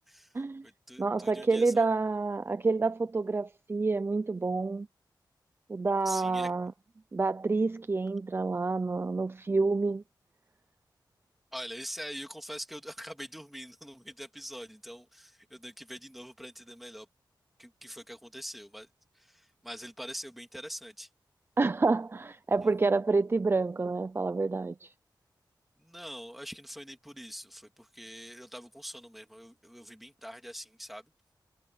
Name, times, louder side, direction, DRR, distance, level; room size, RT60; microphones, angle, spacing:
voice 1, 0.1-0.4 0.6-1.8 6.0-6.5 11.5-17.1 17.6-18.9 19.1-21.1 22.6-22.7 25.8-31.0, equal, ahead, 2.8 m, -44 dB
voice 2, 1.0-4.9 5.7-6.7 7.1-10.0 21.6-24.9, right 3 dB, 30° right, 0.6 m, -28 dB
wide cardioid pair, 100°, 8 cm